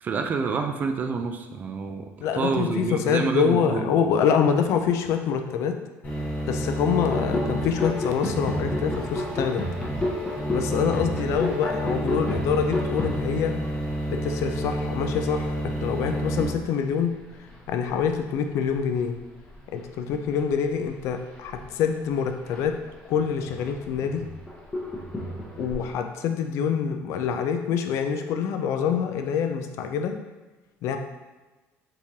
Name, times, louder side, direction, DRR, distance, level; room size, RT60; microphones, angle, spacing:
voice 1, 0.0-3.9, right 5 dB, 30° right, 6 dB, 0.3 m, -28 dB
voice 2, 2.2-5.8 6.5-9.6 10.5-13.6 14.1-17.1 17.7-19.2 19.7-22.8 23.1-24.3 25.6-30.2 30.8-31.0, left 7 dB, 65° left, 6 dB, 0.4 m, -25 dB
sound 1, 6.0-16.4, right 1 dB, 35° left, 1.2 m, -30 dB
sound 2, 6.9-18.3 18.6-19.0 19.3-25.9, left 1 dB, 15° left, 0.7 m, -33 dB
3.6 x 3.1 x 2.7 m, 1.2 s
cardioid pair, 140°, 5 cm